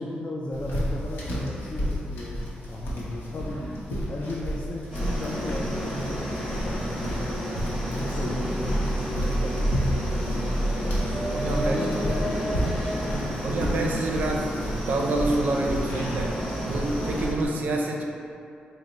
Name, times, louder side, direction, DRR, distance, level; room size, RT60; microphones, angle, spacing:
voice 1, 0.0-3.6 4.0-7.4 7.9-11.0 11.5-13.6, left 2 dB, 30° left, -4 dB, 0.3 m, -35 dB
sound 1, 0.5-17.5, equal, 85° left, 0.7 m, -31 dB
sound 2, 4.9-17.3, equal, 5° left, 1.5 m, -32 dB
voice 2, 9.2-9.5 11.3-11.8 13.4-18.0, right 2 dB, 60° right, 0 dB, 0.4 m, -28 dB
4.3 x 2.0 x 3.8 m, 2.7 s
wide cardioid pair, 165°, 3 cm